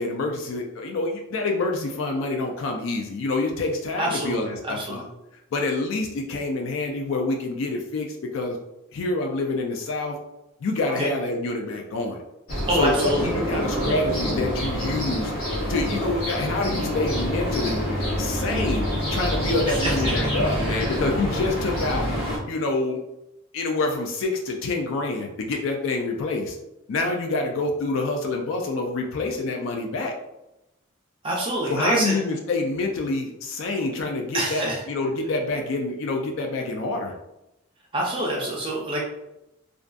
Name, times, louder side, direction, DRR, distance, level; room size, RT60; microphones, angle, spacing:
voice 1, 0.0-5.0 5.5-8.6 8.9-10.2 10.6-12.2 12.7-15.3 15.7-17.8 18.2-23.0 23.5-26.6 26.9-30.1 31.7-37.1, left 2 dB, 70° left, 2 dB, 0.3 m, -27 dB
voice 2, 4.0-5.1 11.0-11.1 12.7-13.9 19.8-21.0 31.2-32.2 34.3-34.8 37.9-39.0, right 1 dB, 25° right, -3 dB, 0.4 m, -27 dB
sound 1, 12.5-22.4, equal, 90° left, 1.0 m, -26 dB
2.4 x 2.4 x 2.2 m, 0.90 s
head